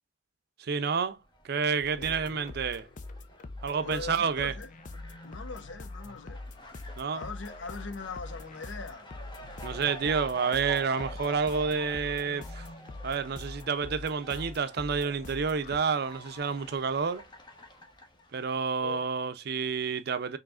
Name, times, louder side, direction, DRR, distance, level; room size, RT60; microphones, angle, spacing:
voice 1, 0.6-1.2 1.4-2.9 3.6-4.5 7.0-7.3 9.6-12.7 13.0-17.3 18.3-20.4, right 5 dB, 60° right, 0.5 m, -29 dB
Fowl, 1.2-18.6, left 1 dB, 25° left, 1.1 m, -48 dB
sound 1, 1.8-15.8, left 2 dB, 45° left, 0.5 m, -43 dB
voice 2, 3.8-4.7 5.2-6.4 7.1-9.1 18.8-19.0, left 4 dB, 85° left, 0.8 m, -41 dB
4.8 x 3.1 x 2.4 m
head